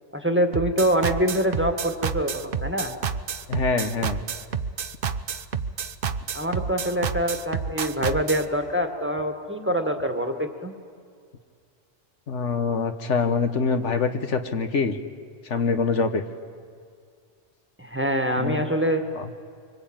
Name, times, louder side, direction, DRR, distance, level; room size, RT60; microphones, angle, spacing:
voice 1, 0.1-2.9 6.3-10.7 17.8-19.0, equal, 10° right, 5 dB, 1.6 m, -25 dB
sound 1, 0.5-8.5, right 6 dB, 50° right, 0.9 m, -29 dB
voice 2, 3.5-4.2 12.3-15.0 15.4-16.2 18.4-18.6 19.1-19.2, left 4 dB, 70° left, 8 dB, 1.4 m, -24 dB
25.5 x 24.5 x 8.9 m, 2.2 s
omnidirectional pair, 1.3 m